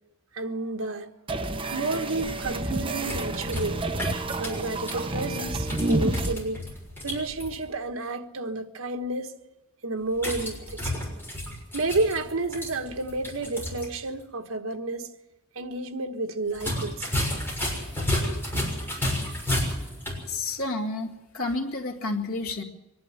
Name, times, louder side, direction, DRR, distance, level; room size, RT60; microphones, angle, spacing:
voice 1, 0.3-1.1 1.7-3.8 4.4-6.6 7.0-9.3 9.8-10.9 11.7-15.1 15.5-17.1, right 2 dB, 75° right, 1.4 m, -30 dB
sound 1, 1.3-6.3, right 2 dB, 25° right, 1.0 m, -29 dB
sound 2, 2.8-7.6 10.1-13.9 14.2-14.3 16.5-20.3, left 1 dB, 10° left, 6.5 m, -32 dB
voice 2, 20.3-22.6, left 2 dB, 85° left, 2.3 m, -30 dB
24.0 x 11.0 x 9.7 m
head